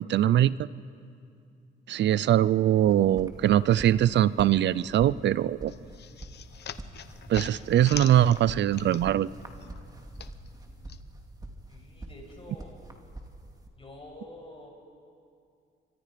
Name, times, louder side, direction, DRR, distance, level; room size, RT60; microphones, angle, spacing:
voice 1, 0.1-0.7 1.9-5.7 7.3-9.3, right 11 dB, 65° right, 19 dB, 0.6 m, -22 dB
sound 1, 2.8-13.7, right 1 dB, 20° right, 2.4 m, -45 dB
sound 2, 5.7-9.3 9.6-11.0, left 9 dB, 60° left, 0.9 m, -42 dB
voice 2, 11.7-12.9 13.7-14.7, left 1 dB, 30° left, 0 dB, 6.9 m, -47 dB
29.0 x 24.5 x 5.2 m, 2.4 s
cardioid pair, 90°, 20 cm